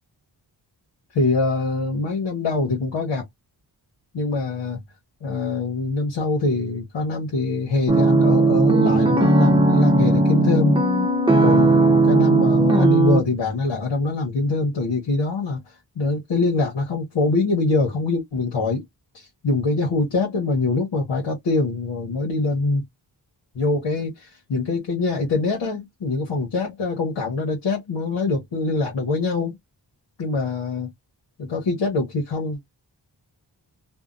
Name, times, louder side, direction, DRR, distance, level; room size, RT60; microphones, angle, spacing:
voice 1, 1.1-3.2 4.1-4.8 5.2-10.8 11.3-18.8 19.1-22.8 23.5-29.6 30.2-30.9 31.4-32.6, left 3 dB, 90° left, 1.0 m, -24 dB
sound 1, 7.9-13.2, right 2 dB, 10° right, 0.8 m, -17 dB
2.7 x 2.1 x 2.4 m
cardioid pair, 50°, 44 cm